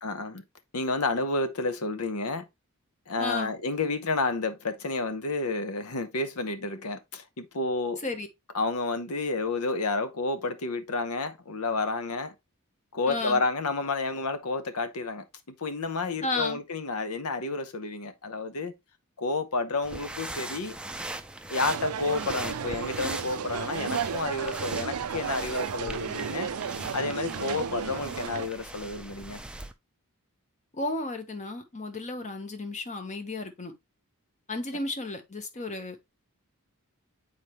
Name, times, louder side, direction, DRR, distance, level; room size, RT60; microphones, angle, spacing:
voice 1, 0.0-0.4 0.7-2.4 3.1-8.0 8.5-12.3 12.9-18.7 19.2-20.8 21.5-26.5 26.9-29.4, left 3 dB, 75° left, 0.9 m, -30 dB
voice 2, 3.2-3.5 8.0-8.3 13.1-13.4 16.2-16.6 30.7-33.7 34.5-36.0, left 2 dB, 35° left, 1.1 m, -33 dB
sound 1, 19.8-29.7, right 2 dB, 5° right, 0.5 m, -40 dB
sound 2, 21.6-28.5, right 7 dB, 70° right, 0.4 m, -33 dB
7.4 x 4.3 x 3.0 m
head